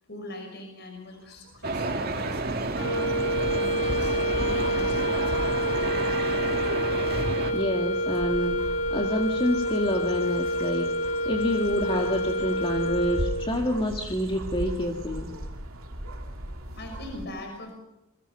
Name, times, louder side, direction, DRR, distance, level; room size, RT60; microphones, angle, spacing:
voice 1, 0.1-5.9 16.7-17.8, left 1 dB, 50° left, 3 dB, 5.8 m, -41 dB
sound 1, 1.1-17.3, right 1 dB, 75° right, 2.8 m, -39 dB
sound 2, 1.6-7.5, right 2 dB, 45° right, 2.3 m, -30 dB
sound 3, 2.7-13.6, equal, 85° left, 4.4 m, -28 dB
voice 2, 7.5-15.3, equal, 25° left, 2 dB, 2.0 m, -28 dB
28.5 x 22.0 x 5.7 m, 0.89 s
head